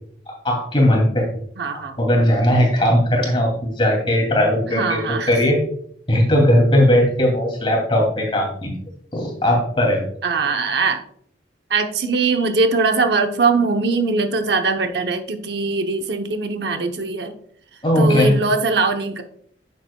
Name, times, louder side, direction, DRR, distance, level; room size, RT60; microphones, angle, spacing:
voice 1, 0.3-1.3 1.7-5.0 5.3-5.6 6.1-8.7 9.1-10.0 17.8-18.3, equal, 30° left, 0 dB, 2.7 m, -18 dB
voice 2, 1.6-2.0 4.7-5.4 10.2-11.0 11.7-17.3 18.0-19.2, right 4 dB, 65° right, 5 dB, 0.9 m, -21 dB
10.0 x 7.3 x 2.3 m, 0.64 s
head